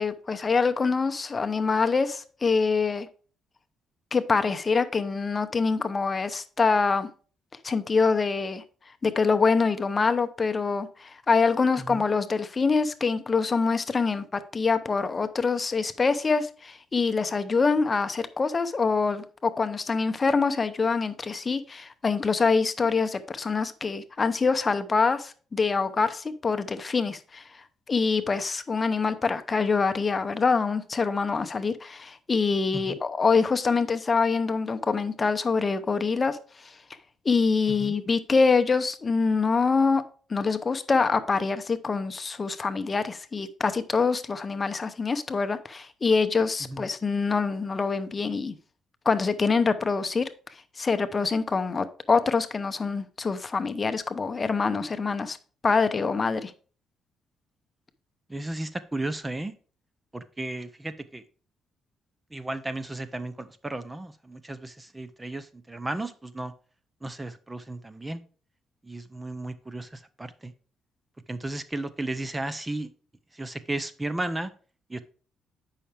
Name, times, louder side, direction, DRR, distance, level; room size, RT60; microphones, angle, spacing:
voice 1, 0.0-3.1 4.1-7.1 7.6-8.6 9.0-27.6 27.9-36.8 37.2-40.0 40.3-48.5 49.0-50.3 50.8-55.4 55.6-56.5, left 4 dB, 30° left, 10 dB, 0.7 m, -25 dB
voice 2, 58.3-59.5 60.1-61.2 62.3-66.5 67.0-68.2 68.8-70.5 71.3-72.9 73.3-74.5 74.9-75.0, right 2 dB, 15° right, 13 dB, 0.6 m, -34 dB
8.3 x 5.7 x 3.4 m, 0.39 s
cardioid pair, 90°, 0 cm